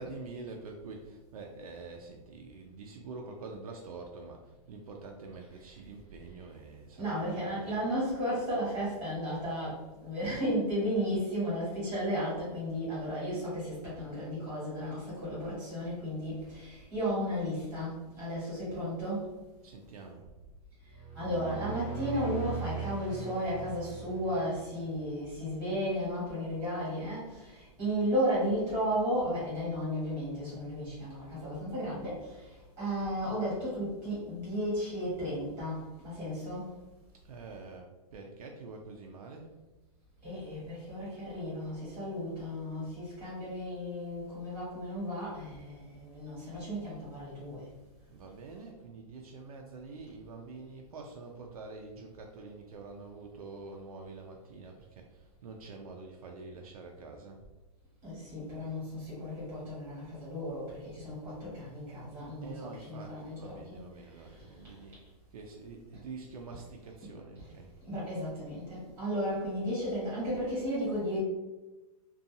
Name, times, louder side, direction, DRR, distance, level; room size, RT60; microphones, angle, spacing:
voice 1, 0.0-7.8 19.6-20.3 37.2-39.5 48.1-57.4 62.4-65.0 65.3-67.7, right 3 dB, 65° right, 2 dB, 0.4 m, -46 dB
voice 2, 7.0-19.3 21.1-36.7 40.2-47.6 58.0-63.8 64.3-64.4 67.8-71.2, equal, 10° right, -8 dB, 1.1 m, -34 dB
sound 1, 20.8-24.7, right 5 dB, 15° left, 1.0 m, -39 dB
2.6 x 2.3 x 2.6 m, 1.1 s
hypercardioid pair, 175°, 20 cm